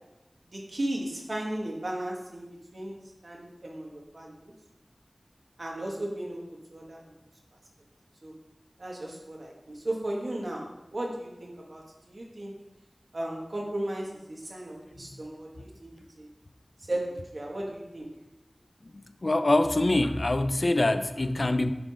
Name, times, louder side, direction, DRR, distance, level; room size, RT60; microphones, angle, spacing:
voice 1, 0.5-2.9 3.2-4.5 5.6-7.0 8.2-8.3 8.8-12.6 13.1-16.3 16.9-18.1, right 1 dB, 70° right, -1 dB, 1.7 m, -35 dB
voice 2, 19.2-21.7, left 2 dB, 60° left, 10 dB, 0.5 m, -24 dB
10.5 x 3.8 x 5.0 m, 1.0 s
wide cardioid pair, 40°, 0 cm